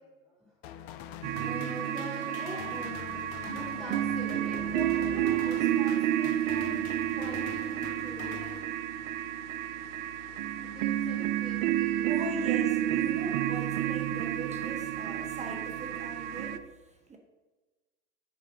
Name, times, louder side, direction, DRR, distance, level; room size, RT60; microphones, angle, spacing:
sound 1, 0.6-9.2, left 10 dB, 65° left, 0.7 m, -44 dB
sound 2, 1.2-16.6, right 12 dB, 60° right, 0.6 m, -30 dB
voice 1, 1.4-6.7 7.1-8.6 10.6-12.1, left 1 dB, ahead, -10 dB, 2.5 m, -44 dB
sound 3, 3.0-16.6, left 7 dB, 40° left, 2.5 m, -54 dB
voice 2, 12.0-17.2, right 2 dB, 20° right, 2 dB, 1.2 m, -40 dB
7.1 x 4.2 x 6.1 m, 1.2 s
hypercardioid pair, 85°, 34 cm